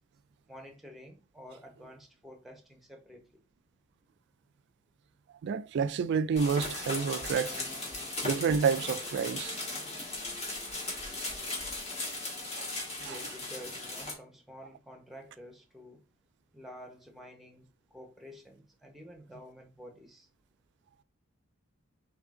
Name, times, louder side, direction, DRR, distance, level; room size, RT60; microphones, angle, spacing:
voice 1, 0.5-3.2 12.9-16.0 16.5-17.7 17.9-20.3, equal, ahead, 0.8 m, -50 dB
voice 2, 5.4-7.6 8.2-9.6 12.6-12.7 13.0-13.2, right 6 dB, 55° right, 0.3 m, -29 dB
sound 1, 6.4-14.1, left 2 dB, 30° left, 1.6 m, -37 dB
3.7 x 3.3 x 3.6 m
head